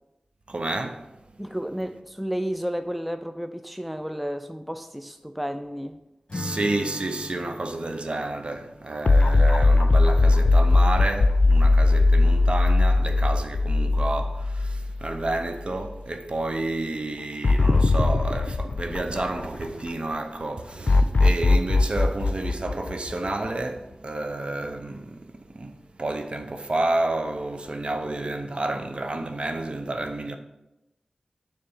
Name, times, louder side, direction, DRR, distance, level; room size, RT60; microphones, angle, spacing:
voice 1, 0.5-1.1 6.3-30.4, right 2 dB, 50° right, 0.7 m, -30 dB
voice 2, 1.4-6.0, equal, ahead, 0.4 m, -32 dB
Acoustic guitar / Strum, 6.3-10.2, left 1 dB, 45° left, 1.4 m, -40 dB
sound 1, 9.0-15.4 15.8-15.9 17.4-19.9 20.9-23.6, left 2 dB, 65° left, 0.4 m, -20 dB
6.8 x 3.3 x 5.5 m
cardioid pair, 45°, 2 cm